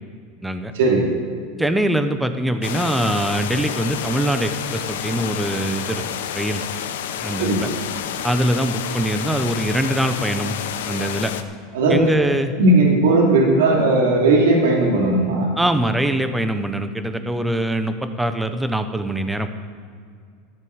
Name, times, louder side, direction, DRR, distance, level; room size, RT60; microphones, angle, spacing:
voice 1, 0.7-1.1 7.4-7.7 11.7-12.0 12.6-15.5, right 2 dB, 90° right, -1 dB, 2.7 m, -16 dB
voice 2, 1.6-6.0 6.3-6.6 7.2-7.7 8.2-10.5 10.8-11.3 11.9-12.5 15.6-19.5, right 1 dB, 5° right, 8 dB, 0.9 m, -23 dB
sound 1, 2.6-11.4, left 9 dB, 90° left, 0.9 m, -29 dB
13.5 x 7.4 x 8.2 m, 2.2 s
supercardioid pair, 130°, 0 cm